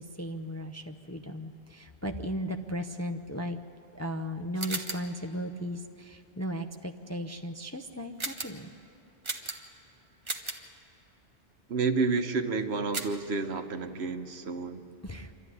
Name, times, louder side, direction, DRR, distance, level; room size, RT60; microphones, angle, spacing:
voice 1, 0.0-3.6 3.9-8.7 15.0-15.3, equal, 20° left, 4 dB, 0.5 m, -36 dB
sound 1, 4.5-5.1 8.2-8.6 9.2-9.8 10.2-10.7 12.9-13.3, right 2 dB, 25° right, 1.1 m, -36 dB
voice 2, 11.7-14.8, right 4 dB, 70° right, 7 dB, 1.3 m, -30 dB
27.0 x 12.5 x 9.8 m, 2.8 s
omnidirectional pair, 1.2 m